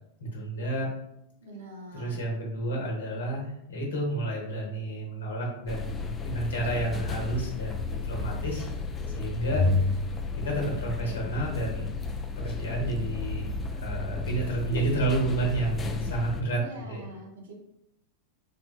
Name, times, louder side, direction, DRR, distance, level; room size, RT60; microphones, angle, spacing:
voice 1, 0.2-0.9 1.9-8.6 9.2-9.6 10.4-11.9 12.4-16.6 16.9-17.0, right 2 dB, 75° left, 0 dB, 0.9 m, -30 dB
voice 2, 1.4-2.2 16.5-17.5, right 2 dB, 75° right, 0 dB, 0.7 m, -44 dB
sound 1, 5.7-16.4, left 3 dB, 20° left, 0.3 m, -32 dB
3.6 x 2.3 x 2.3 m, 0.83 s
hypercardioid pair, 95°, 0 cm